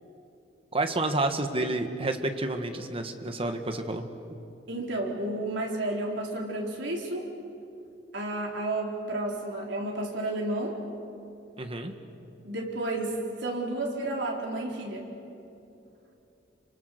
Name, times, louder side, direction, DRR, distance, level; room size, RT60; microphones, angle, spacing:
voice 1, 0.7-4.0 4.3-4.4 11.6-11.9, right 2 dB, 30° right, 7 dB, 1.6 m, -29 dB
voice 2, 4.7-7.3 8.1-10.8 12.4-13.1 13.4-15.1, right 2 dB, 80° right, -1 dB, 4.2 m, -31 dB
29.0 x 25.0 x 6.7 m, 2.7 s
head